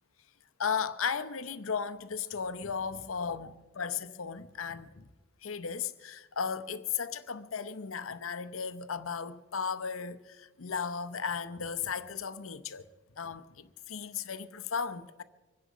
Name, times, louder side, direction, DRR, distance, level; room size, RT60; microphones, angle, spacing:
voice 1, 0.6-5.1 5.4-12.8 13.2-15.2, left 6 dB, 80° left, 0.8 m, -35 dB
25.0 x 10.0 x 5.1 m
head